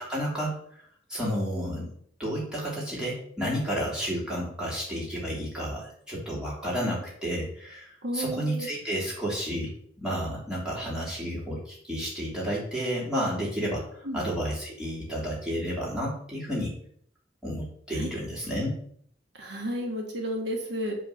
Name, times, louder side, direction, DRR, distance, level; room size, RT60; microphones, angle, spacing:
voice 1, 0.1-0.5 1.1-1.9 2.2-9.7 10.0-16.7 17.4-18.7, equal, 5° right, -6 dB, 3.0 m, -31 dB
voice 2, 8.0-8.7 14.0-14.2 18.0-18.1 19.4-20.9, equal, 70° right, 0 dB, 1.7 m, -32 dB
7.9 x 3.8 x 6.6 m, 0.63 s
head